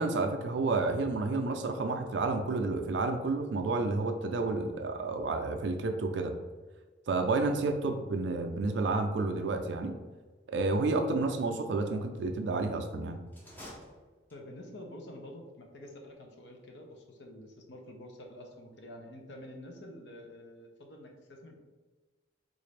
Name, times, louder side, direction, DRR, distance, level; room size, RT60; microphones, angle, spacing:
voice 1, 0.0-6.3 7.1-9.9 10.5-13.2, right 3 dB, 70° right, 5 dB, 0.4 m, -30 dB
sound 1, 13.3-14.7, equal, 10° left, 0.6 m, -50 dB
voice 2, 14.3-21.6, left 1 dB, 70° left, 2 dB, 0.6 m, -48 dB
3.9 x 2.5 x 3.2 m, 1.3 s
head